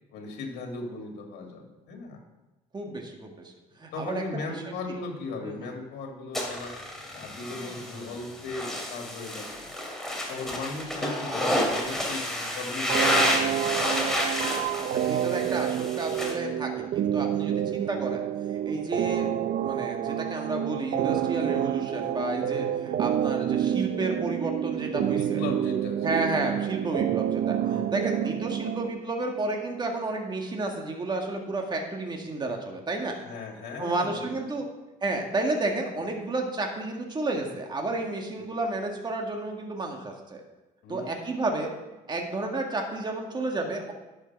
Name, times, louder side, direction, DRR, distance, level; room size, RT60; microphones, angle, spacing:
voice 1, 0.1-2.2 3.9-6.8 7.1-9.7 10.3-12.3 12.5-13.8 24.9-26.2 27.6-27.9 33.2-34.6 40.8-41.1, left 3 dB, 75° left, 2 dB, 2.2 m, -37 dB
voice 2, 2.7-3.3 3.8-4.9 5.4-5.7 14.7-18.2 18.6-25.4 26.0-27.6 27.9-33.2 33.8-34.6 35.0-40.4 40.9-41.7 42.1-43.9, right 2 dB, 25° right, 2 dB, 1.8 m, -31 dB
sound 1, 6.3-16.3, left 1 dB, 5° left, 2.6 m, -30 dB
sound 2, 12.9-28.9, right 11 dB, 60° right, 0.6 m, -28 dB
11.0 x 6.8 x 5.9 m, 1.1 s
cardioid pair, 110°, 17 cm